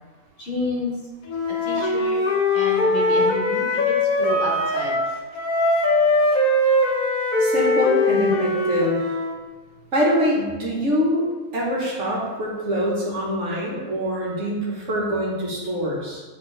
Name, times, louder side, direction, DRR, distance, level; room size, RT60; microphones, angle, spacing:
voice 1, 0.4-1.0 1.5-2.2 2.5-4.9, left 2 dB, 50° left, -3 dB, 1.5 m, -30 dB
Wind instrument woodwind instrument, 1.3-5.1 5.3-9.4, left 2 dB, 70° left, 1.3 m, -21 dB
voice 2, 7.4-9.0 9.9-11.2 11.5-16.2, equal, 55° right, -4 dB, 1.7 m, -24 dB
9.6 x 3.6 x 3.4 m, 1.3 s
omnidirectional pair, 1.5 m